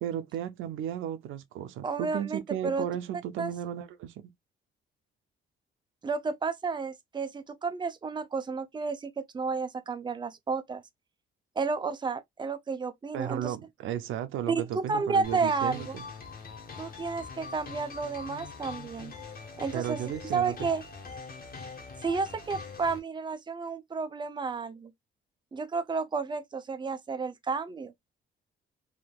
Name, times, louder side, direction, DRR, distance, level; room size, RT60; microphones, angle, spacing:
voice 1, 0.0-4.3 13.1-16.0 19.7-20.7, right 10 dB, 85° right, 0.5 m, -34 dB
voice 2, 1.8-2.9 3.4-3.5 6.0-10.8 11.6-13.5 14.5-16.0 16.8-19.1 19.6-20.0 20.3-20.8 22.0-24.9 25.5-27.9, right 4 dB, 25° right, 0.6 m, -31 dB
sound 1, 15.2-23.0, left 4 dB, 50° left, 1.4 m, -43 dB
3.6 x 2.6 x 2.3 m
cardioid pair, 90°, 20 cm